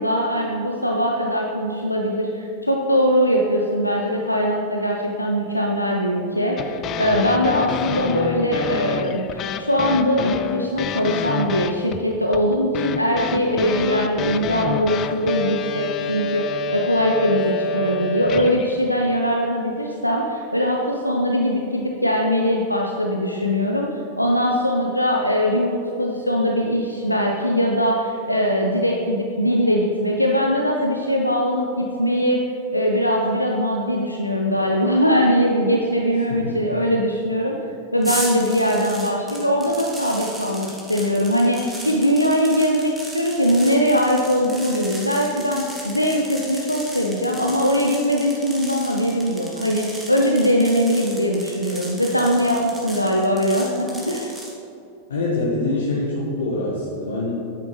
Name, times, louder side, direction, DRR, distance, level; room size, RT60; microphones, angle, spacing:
voice 1, 0.0-32.4 32.7-37.6 37.9-54.3, equal, 85° left, 0 dB, 0.7 m, -21 dB
sound 1, 6.6-18.8, left 6 dB, 35° left, 0.4 m, -28 dB
voice 2, 36.3-36.6 55.1-57.4, left 2 dB, 65° left, -4 dB, 1.3 m, -25 dB
sound 2, 38.0-54.5, right 1 dB, 10° right, 1.9 m, -36 dB
10.0 x 8.6 x 3.2 m, 2.7 s
figure-of-eight pair, 90°, 0 cm